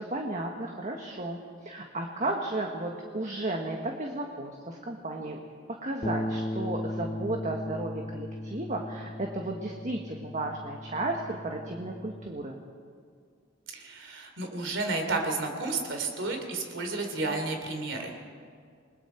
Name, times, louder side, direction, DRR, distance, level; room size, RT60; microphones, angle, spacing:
voice 1, 0.0-5.4 5.7-12.6, right 2 dB, 40° right, 2 dB, 1.4 m, -34 dB
Bass guitar, 6.0-12.3, left 1 dB, 15° left, 0.6 m, -37 dB
voice 2, 13.7-18.1, right 3 dB, 75° right, 3 dB, 3.1 m, -31 dB
28.5 x 20.5 x 4.5 m, 2.1 s
head